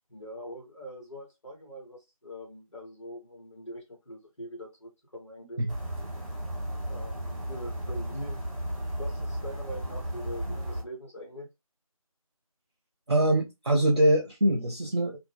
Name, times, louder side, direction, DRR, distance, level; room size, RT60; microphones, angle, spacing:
voice 1, 0.1-5.6 6.9-8.4 8.9-11.5, equal, 50° left, 1.3 m, -43 dB
sound 1, 5.7-10.8, right 1 dB, 10° right, 0.9 m, -34 dB
voice 2, 13.1-15.2, right 1 dB, 45° right, 0.4 m, -23 dB
2.5 x 2.1 x 3.3 m
figure-of-eight pair, 165°, 19 cm